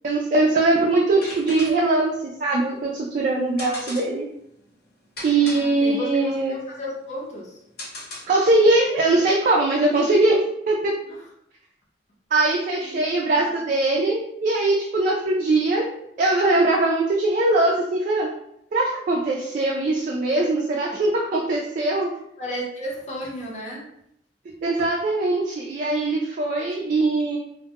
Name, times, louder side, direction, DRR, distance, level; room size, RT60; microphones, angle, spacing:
voice 1, 0.0-2.1 2.4-4.2 5.2-6.6 8.3-10.4 10.7-10.9 12.3-15.9 16.2-18.3 18.7-22.1 24.6-27.4, right 2 dB, 45° right, -2 dB, 0.3 m, -21 dB
sound 1, 1.0-8.6, left 1 dB, 60° left, 1.1 m, -40 dB
voice 2, 5.4-7.6 11.1-11.2 12.8-13.5 22.4-23.9, equal, 40° left, -3 dB, 0.6 m, -34 dB
2.1 x 2.1 x 2.8 m, 0.75 s
head